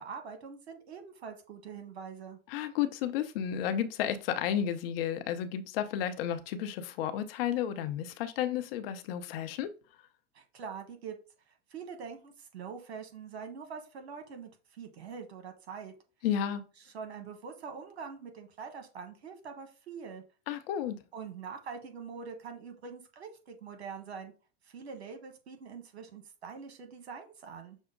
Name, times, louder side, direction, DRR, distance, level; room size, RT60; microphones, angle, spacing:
voice 1, 0.0-2.4 10.3-11.2 11.5-15.9 16.9-20.2 21.1-24.3 24.6-27.8, right 6 dB, 80° right, 1.3 m, -44 dB
voice 2, 2.5-9.7 16.2-16.6 20.5-21.0, left 10 dB, 65° left, 0.8 m, -32 dB
6.2 x 2.1 x 3.7 m
hypercardioid pair, 95°, 31 cm